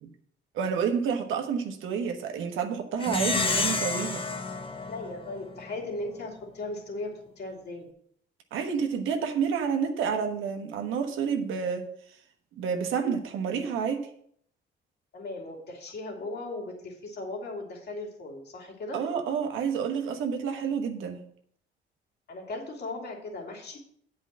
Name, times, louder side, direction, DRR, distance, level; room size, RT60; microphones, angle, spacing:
voice 1, 0.5-4.2 8.5-11.9 12.6-14.1 18.9-21.2, right 6 dB, 90° right, 1.3 m, -29 dB
Plucked string instrument, 3.0-5.8, left 3 dB, 25° left, 1.0 m, -30 dB
voice 2, 4.9-7.9 15.1-19.0 22.3-23.8, left 2 dB, 55° left, 2.9 m, -37 dB
8.5 x 5.0 x 7.4 m
cardioid pair, 90°, 20 cm